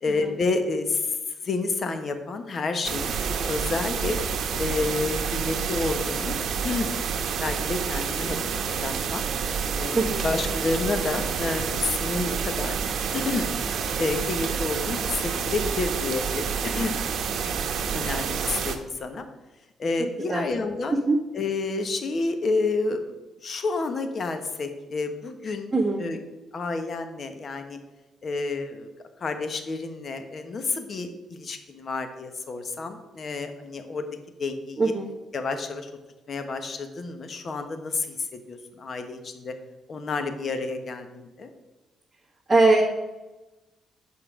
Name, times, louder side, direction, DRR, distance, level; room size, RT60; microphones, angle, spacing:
voice 1, 0.0-1.2 1.4-3.1 3.4-4.2 4.6-6.4 6.6-6.9 7.4-8.4 8.7-9.2 9.8-12.7 13.1-13.5 14.0-17.0 17.9-19.2 19.8-20.9 21.3-23.1 23.4-26.2 26.5-27.8 28.2-28.9 29.2-34.0 34.4-34.9 35.3-35.9 36.3-38.2 38.5-39.5 39.9-41.5, left 3 dB, 45° left, 7 dB, 1.1 m, -29 dB
sound 1, 2.8-18.8, right 6 dB, 65° right, 0.9 m, -28 dB
voice 2, 25.7-26.0 34.8-35.1 42.5-42.8, right 3 dB, 20° right, -5 dB, 1.5 m, -21 dB
7.0 x 5.3 x 6.2 m, 1.1 s
cardioid pair, 90°, 0 cm